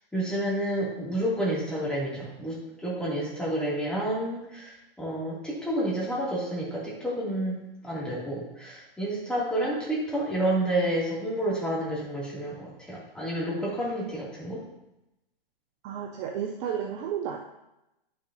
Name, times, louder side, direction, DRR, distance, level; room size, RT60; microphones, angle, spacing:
voice 1, 0.1-14.6, right 1 dB, 5° left, -7 dB, 2.7 m, -30 dB
voice 2, 15.8-17.4, right 8 dB, 30° right, 2 dB, 0.7 m, -32 dB
10.5 x 6.4 x 2.8 m, 0.90 s
hypercardioid pair, 120°, 29 cm